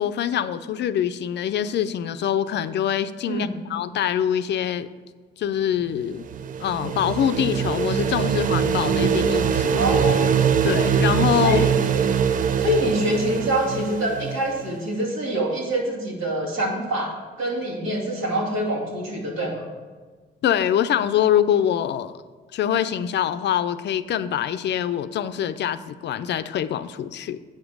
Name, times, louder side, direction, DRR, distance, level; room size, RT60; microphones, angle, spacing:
voice 1, 0.0-4.9 5.4-6.2 6.6-9.8 10.6-11.6 20.4-22.2 22.5-27.4, left 10 dB, 60° left, 12 dB, 0.5 m, -24 dB
Industry Buzz, 6.0-14.8, right 7 dB, 45° right, 0.4 m, -22 dB
voice 2, 9.8-10.3 11.3-11.7 12.6-19.6, right 1 dB, 85° right, -2 dB, 2.3 m, -25 dB
8.0 x 5.1 x 6.3 m, 1.4 s
cardioid pair, 90°, 20 cm